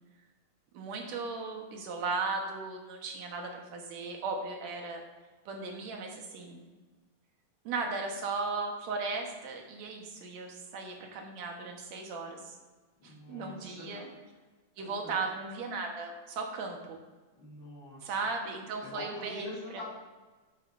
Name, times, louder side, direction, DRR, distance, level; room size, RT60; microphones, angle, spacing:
voice 1, 0.7-5.0 5.5-6.6 7.6-12.6 13.0-14.0 14.8-17.0 18.0-19.5, right 4 dB, 65° right, 2 dB, 2.4 m, -36 dB
voice 2, 13.0-14.1 14.8-15.2 17.4-18.1 18.8-19.8, left 1 dB, 60° left, -11 dB, 4.0 m, -44 dB
11.5 x 8.5 x 2.6 m, 1.3 s
omnidirectional pair, 3.5 m